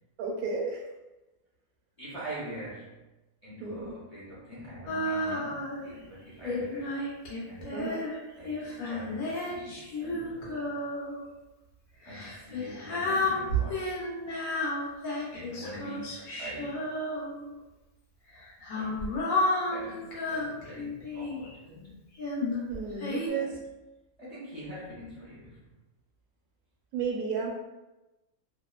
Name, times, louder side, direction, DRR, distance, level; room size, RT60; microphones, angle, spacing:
voice 1, 0.2-0.8 3.6-4.0 7.7-8.0 22.7-23.5 26.9-27.6, right 4 dB, 75° right, 0 dB, 1.0 m, -32 dB
voice 2, 2.0-3.0 3.4-7.0 7.5-8.0 8.4-10.7 12.0-14.0 15.3-16.9 18.7-19.1 19.7-22.0 23.3-23.5 24.2-25.6, equal, 40° left, -10 dB, 0.6 m, -44 dB
Female singing, 4.9-5.9 6.4-11.3 12.0-17.6 18.4-21.5 22.2-23.3, left 1 dB, 70° left, 1.1 m, -32 dB
2.8 x 2.0 x 2.2 m, 1.0 s
omnidirectional pair, 1.6 m